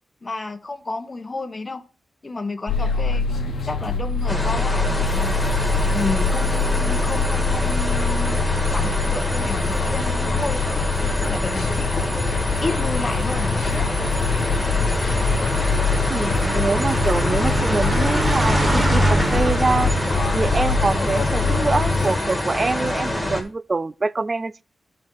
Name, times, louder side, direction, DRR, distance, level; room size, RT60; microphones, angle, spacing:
voice 1, 0.2-1.8 2.2-5.3 5.9-8.4 8.7-10.7 11.2-12.3 12.6-13.9, left 3 dB, 30° left, 1.1 m, -31 dB
sound 1, 2.7-22.2, left 4 dB, 75° left, 1.1 m, -24 dB
sound 2, 4.3-23.4, left 1 dB, 10° left, 1.7 m, -26 dB
sound 3, 4.6-23.1, right 1 dB, 15° right, 1.7 m, -28 dB
voice 2, 16.1-19.9 20.3-24.6, right 3 dB, 30° right, 0.3 m, -24 dB
12.5 x 4.2 x 4.6 m
wide cardioid pair, 120°, 0 cm